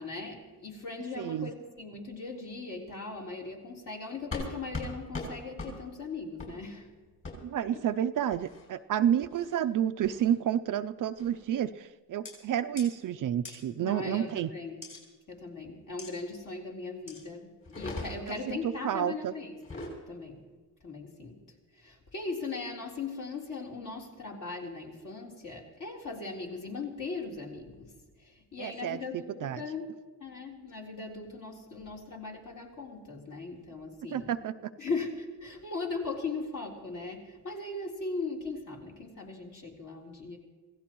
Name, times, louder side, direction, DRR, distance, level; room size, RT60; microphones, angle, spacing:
voice 1, 0.0-6.9 7.7-7.8 13.8-14.8 15.3-17.5 17.8-19.5 20.1-20.4 20.8-21.4 21.8-27.9 28.2-29.9 30.2-34.3 34.8-40.4, left 3 dB, 50° left, -2 dB, 3.9 m, -39 dB
voice 2, 1.2-1.5 7.4-14.5 18.3-19.3 28.6-29.6 34.1-34.7, right 10 dB, 50° right, 10 dB, 0.5 m, -30 dB
sound 1, 4.3-4.5 4.7-4.9 5.1-5.3 5.6-5.7 6.4-6.5 7.2-7.4 8.3-8.7 9.2-9.6 10.0-10.3 11.2-11.4 12.3-12.4 12.8-12.9 13.5-13.6 14.8-15.0 16.0-16.1 17.1-17.2 17.6-18.4 19.5-19.9, left 2 dB, 30° left, 7.1 m, -39 dB
27.0 x 17.0 x 3.1 m, 1.3 s
cardioid pair, 140°, 40 cm